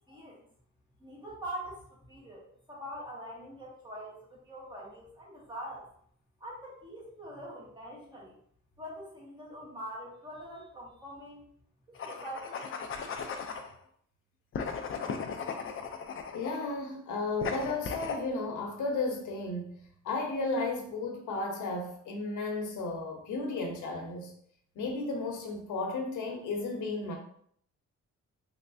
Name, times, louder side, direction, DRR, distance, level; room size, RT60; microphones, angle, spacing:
voice 1, 0.1-0.4 1.0-1.8 2.1-5.9 6.4-8.4 8.8-11.4 11.9-13.3, right 1 dB, 15° right, 1.2 m, -44 dB
sound 1, 12.0-13.7 14.5-16.7 17.4-18.2, left 5 dB, 45° left, 0.4 m, -37 dB
voice 2, 16.3-24.3 24.8-27.2, left 3 dB, 85° left, 0.8 m, -34 dB
3.3 x 3.1 x 2.6 m
cardioid pair, 130°, 29 cm